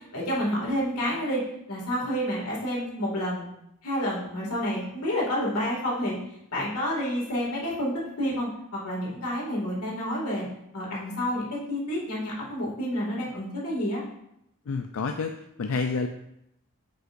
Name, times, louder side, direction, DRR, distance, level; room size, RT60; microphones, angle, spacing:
voice 1, 0.1-1.4 1.7-3.5 3.8-6.2 6.5-7.9 8.2-10.5 10.7-14.0, equal, 90° left, -4 dB, 2.2 m, -29 dB
voice 2, 14.7-15.3 15.6-16.1, left 4 dB, 65° left, 5 dB, 0.4 m, -28 dB
7.7 x 5.5 x 2.6 m, 0.80 s
head